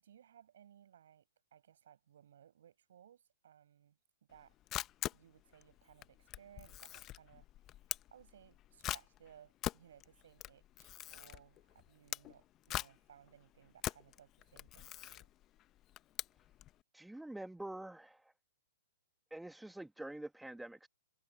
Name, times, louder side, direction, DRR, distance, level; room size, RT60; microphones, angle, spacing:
voice 1, 0.0-4.0 4.3-4.6 5.1-7.5 8.1-15.3, right 9 dB, 70° right, 5.4 m, -62 dB
Camera, 4.3-16.7, left 14 dB, 30° left, 0.9 m, -44 dB
voice 2, 16.9-18.3 19.3-20.9, right 1 dB, 5° right, 1.6 m, -46 dB
hypercardioid pair, 120°, 0 cm